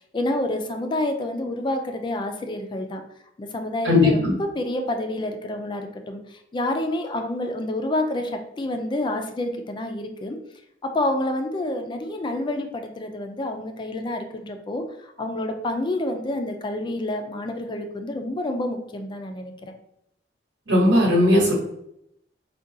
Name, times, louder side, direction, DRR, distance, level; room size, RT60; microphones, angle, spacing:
voice 1, 0.1-3.0 3.4-10.4 10.8-19.7, left 1 dB, 25° left, 5 dB, 0.3 m, -28 dB
voice 2, 3.8-4.3 20.7-21.5, left 1 dB, 85° right, -3 dB, 1.1 m, -17 dB
3.7 x 2.2 x 2.6 m, 0.78 s
head